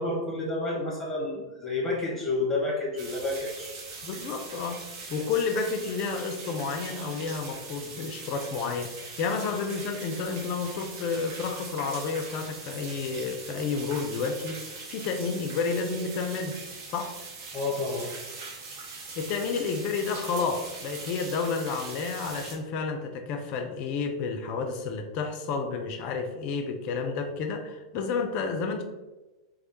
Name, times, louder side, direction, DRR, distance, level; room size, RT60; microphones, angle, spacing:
voice 1, 0.0-3.7 17.5-18.1, left 2 dB, 10° left, -4 dB, 1.2 m, -30 dB
sound 1, 3.0-22.6, right 4 dB, 50° right, 0.7 m, -41 dB
voice 2, 4.0-4.8 5.1-16.6 16.9-17.1 19.2-28.8, left 4 dB, 45° left, 5 dB, 0.4 m, -30 dB
3.1 x 2.0 x 2.9 m, 1.1 s
figure-of-eight pair, 95°, 3 cm